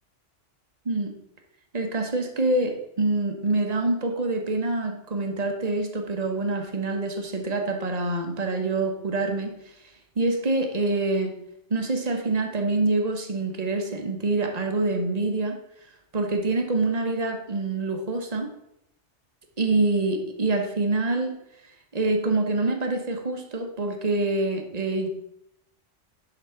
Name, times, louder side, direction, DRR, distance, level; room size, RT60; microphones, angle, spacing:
voice 1, 1.7-9.5 10.2-11.4 11.7-15.6 16.1-18.5 19.6-21.4 21.9-25.1, right 2 dB, 35° right, 4 dB, 1.2 m, -26 dB
11.0 x 4.0 x 5.8 m, 0.80 s
omnidirectional pair, 1.2 m